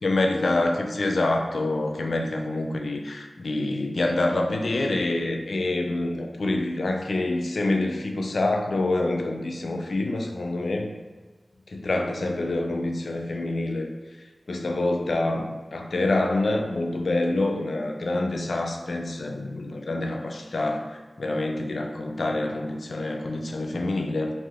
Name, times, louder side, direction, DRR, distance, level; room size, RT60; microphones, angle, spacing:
voice 1, 0.0-10.9 11.7-13.9 14.5-24.3, left 2 dB, 80° left, 3 dB, 0.3 m, -26 dB
3.3 x 2.5 x 2.4 m, 1.3 s
wide cardioid pair, 55°, 0 cm